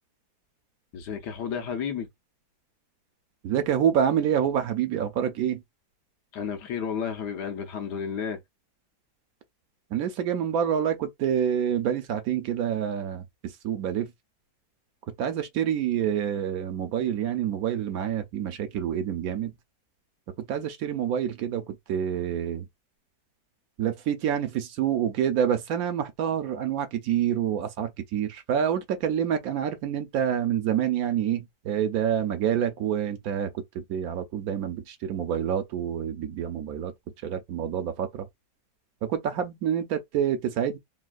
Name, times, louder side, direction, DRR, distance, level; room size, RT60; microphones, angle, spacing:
voice 1, 0.9-2.1 6.3-8.4, left 7 dB, 80° left, 1.4 m, -32 dB
voice 2, 3.4-5.6 9.9-14.1 15.2-19.5 20.4-22.7 23.8-36.9 37.2-38.3 39.0-40.8, right 9 dB, 70° right, 1.0 m, -27 dB
3.3 x 2.3 x 2.4 m
omnidirectional pair, 1.7 m